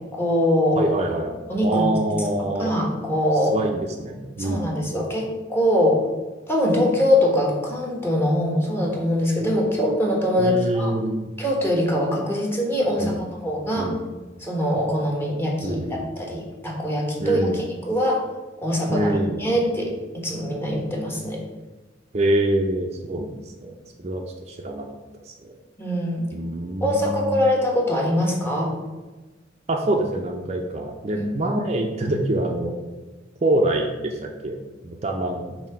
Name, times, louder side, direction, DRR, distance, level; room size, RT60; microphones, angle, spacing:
voice 1, 0.1-0.9 1.5-2.0 2.4-3.5 4.4-6.1 6.5-10.9 11.4-13.9 14.4-18.3 18.6-19.9 20.1-21.4 25.8-26.2 26.8-28.7 31.1-31.3, left 1 dB, 15° left, -1 dB, 1.2 m, -23 dB
voice 2, 0.8-2.7 3.5-4.8 10.4-11.2 13.0-13.2 13.8-14.0 15.6-16.1 17.2-17.6 18.9-19.4 22.1-24.9 25.3-25.5 26.3-27.4 29.7-32.7 33.4-34.6 34.8-35.5, right 1 dB, 35° right, 2 dB, 0.6 m, -25 dB
7.4 x 2.8 x 5.6 m, 1.2 s
head